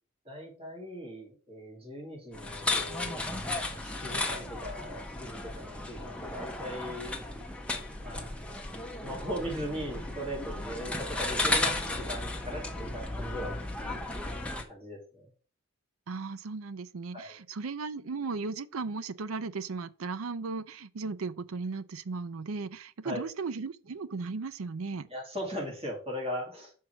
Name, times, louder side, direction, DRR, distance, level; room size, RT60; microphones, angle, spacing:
voice 1, 0.2-3.2 3.7-7.2 8.0-8.6 9.0-14.1 14.7-15.3 17.1-17.4 23.0-23.2 25.1-26.7, equal, 25° right, 2.5 m, -39 dB
sound 1, 2.3-14.6, left 2 dB, 5° left, 0.8 m, -34 dB
voice 2, 16.1-25.1, right 4 dB, 80° right, 0.5 m, -36 dB
5.9 x 4.7 x 6.1 m
head